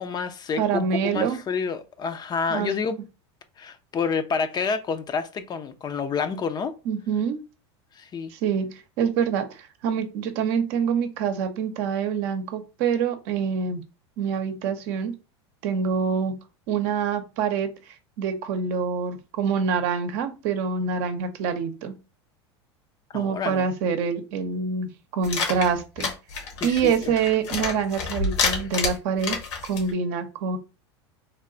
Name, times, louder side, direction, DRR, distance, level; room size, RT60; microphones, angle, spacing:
voice 1, 0.0-3.0 3.6-6.8 8.0-8.3 23.1-23.7 26.6-27.1, left 5 dB, 30° left, 0.5 m, -29 dB
voice 2, 0.6-1.4 2.5-2.7 6.9-7.4 8.3-13.8 14.2-15.1 15.6-16.3 16.7-17.7 18.2-21.9 23.1-26.1 26.6-29.4 29.7-30.6, right 6 dB, 60° right, 0.7 m, -26 dB
sound 1, 25.2-29.9, left 4 dB, 75° left, 1.4 m, -28 dB
3.3 x 2.3 x 3.8 m
hypercardioid pair, 100°, 15 cm